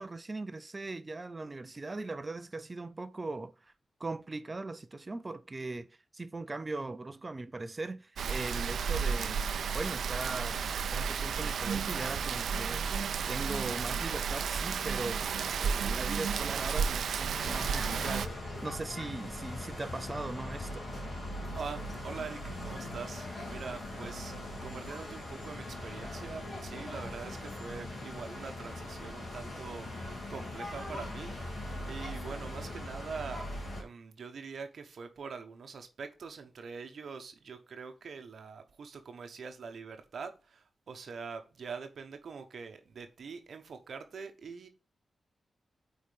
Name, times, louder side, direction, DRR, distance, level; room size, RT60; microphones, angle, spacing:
voice 1, 0.0-3.7 4.0-5.9 6.1-9.4 9.7-10.6 10.9-20.8, right 2 dB, 20° right, 0.5 m, -40 dB
Rain, 8.2-18.3, right 6 dB, 80° right, 0.5 m, -32 dB
sound 1, 17.4-33.8, left 1 dB, 35° left, 3.0 m, -40 dB
voice 2, 21.5-33.5 33.8-44.7, right 5 dB, 60° right, 0.9 m, -44 dB
8.8 x 4.4 x 3.4 m
wide cardioid pair, 155°, 0 cm